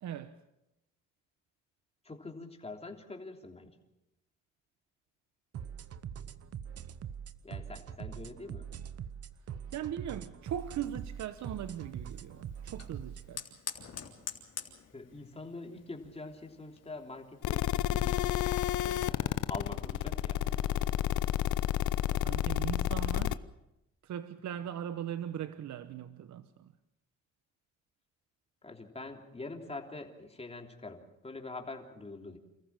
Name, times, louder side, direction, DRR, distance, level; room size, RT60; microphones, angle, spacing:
voice 1, 0.0-0.3 9.7-13.5 22.1-23.4 24.0-26.7, right 10 dB, 70° right, 1.0 m, -39 dB
voice 2, 2.0-3.7 7.4-8.7 14.9-18.4 18.8-20.4 28.6-32.4, left 3 dB, 20° left, 3.4 m, -45 dB
sound 1, 5.5-13.3, right 8 dB, 55° right, 1.0 m, -43 dB
Fire, 10.4-17.7, left 7 dB, 55° left, 3.4 m, -48 dB
sound 2, 17.4-23.3, left 13 dB, 80° left, 0.7 m, -30 dB
28.5 x 14.5 x 7.5 m
cardioid pair, 90°, 30 cm